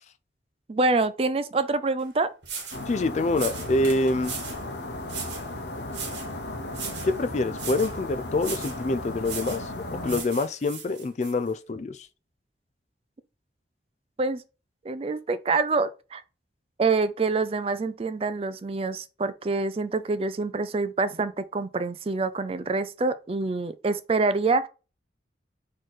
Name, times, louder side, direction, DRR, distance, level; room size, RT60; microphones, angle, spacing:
voice 1, 0.7-2.3 14.2-14.4 14.8-16.2 16.8-24.7, right 3 dB, 30° right, 0.4 m, -26 dB
sound 1, 2.0-2.1 2.4-2.9 3.3-4.6 5.1-5.5 5.9-6.3 6.7-7.2 7.5-8.0 8.4-8.8 9.2-9.7 10.0-11.3, right 6 dB, 75° right, 1.5 m, -37 dB
sound 2, 2.7-10.2, left 2 dB, 70° left, 0.9 m, -35 dB
voice 2, 2.9-4.3 7.0-12.0, left 2 dB, 40° left, 0.3 m, -26 dB
4.2 x 3.1 x 4.0 m
head